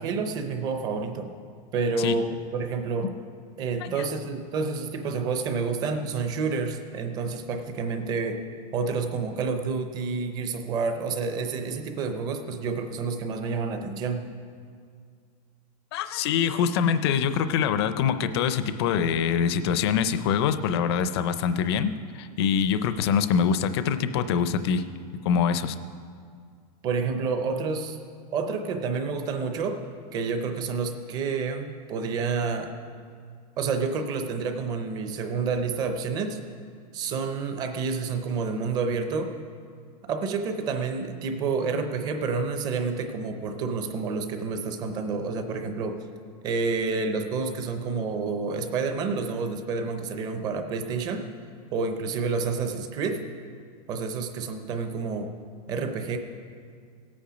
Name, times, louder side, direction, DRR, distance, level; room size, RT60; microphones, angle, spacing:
voice 1, 0.0-1.3 1.7-3.1 3.6-8.5 8.7-14.3 26.8-28.0 28.3-29.8 30.1-32.7 33.6-36.4 36.9-39.3 40.0-46.0 46.4-51.3 51.7-53.2 53.9-55.3 55.7-56.2, right 4 dB, 20° right, 7 dB, 0.6 m, -29 dB
voice 2, 15.9-24.8 25.2-25.8, left 7 dB, 40° left, 11 dB, 0.5 m, -24 dB
17.5 x 8.6 x 5.1 m, 2.1 s
supercardioid pair, 180°, 21 cm